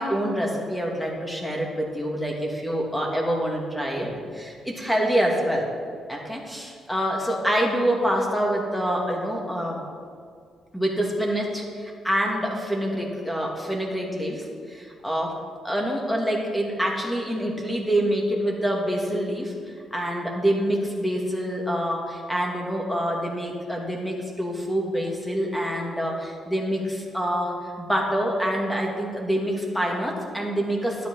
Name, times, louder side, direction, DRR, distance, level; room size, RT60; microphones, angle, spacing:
voice 1, 0.0-5.7 6.1-9.8 10.7-15.3 15.6-19.5 19.9-31.1, equal, 5° left, -1 dB, 2.8 m, -26 dB
11.5 x 9.9 x 5.8 m, 2.2 s
cardioid pair, 90°, 0 cm